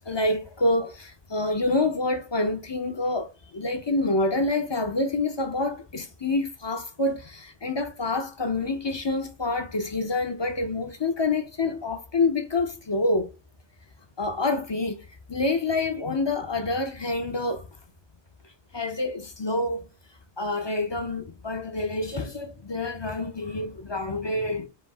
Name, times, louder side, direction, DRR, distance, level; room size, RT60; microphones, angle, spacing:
voice 1, 0.1-13.3 14.2-17.7 18.7-19.9 20.4-24.7, left 2 dB, 35° left, 0.5 m, -27 dB
4.3 x 2.7 x 3.5 m
omnidirectional pair, 1.1 m